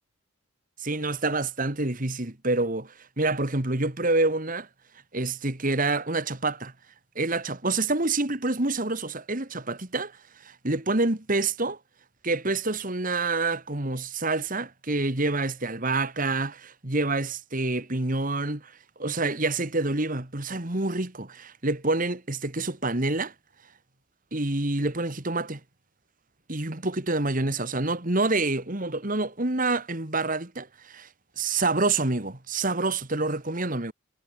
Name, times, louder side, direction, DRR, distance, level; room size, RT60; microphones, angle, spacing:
voice 1, 0.8-4.7 5.1-6.7 7.2-10.1 10.4-11.8 12.2-18.7 19.0-23.3 24.3-25.6 26.5-31.1 31.4-33.9, right 2 dB, 40° right, 2.1 m, -27 dB
head